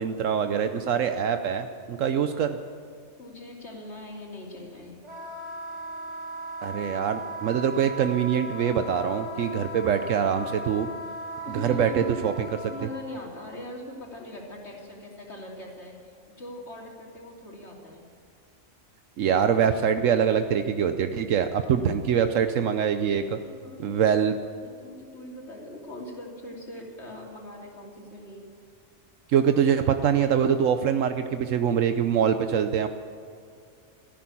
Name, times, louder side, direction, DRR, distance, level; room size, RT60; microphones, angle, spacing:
voice 1, 0.0-2.6 6.6-10.9 11.5-12.5 19.2-23.4 23.8-24.4 29.3-32.9, right 8 dB, 75° right, 8 dB, 1.1 m, -24 dB
voice 2, 3.2-5.0 11.4-12.2 12.7-18.1 23.4-24.0 24.6-28.4, left 1 dB, 55° left, -1 dB, 3.3 m, -41 dB
Wind instrument woodwind instrument, 5.0-12.9, equal, 25° right, 4.0 m, -38 dB
14.0 x 11.5 x 8.4 m, 2.3 s
omnidirectional pair, 1.4 m